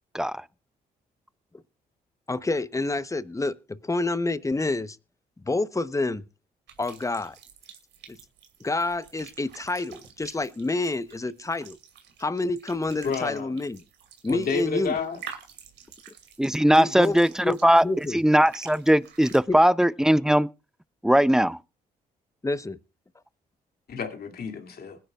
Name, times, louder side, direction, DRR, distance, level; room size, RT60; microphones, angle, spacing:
voice 1, 2.3-5.0 5.5-6.2 6.8-7.4 8.1-8.2 8.6-11.8 12.2-13.8 14.2-14.9 16.8-18.2 19.5-19.6 22.4-22.8, left 2 dB, 15° left, 0.9 m, -28 dB
sound 1, 6.7-19.4, right 7 dB, 80° right, 2.6 m, -48 dB
voice 2, 13.0-13.6 14.3-15.2 23.9-25.0, left 5 dB, 60° left, 2.5 m, -30 dB
voice 3, 16.4-17.8 18.1-20.5 21.0-21.6, equal, 5° right, 0.7 m, -20 dB
21.0 x 10.5 x 2.4 m
supercardioid pair, 55°, 18 cm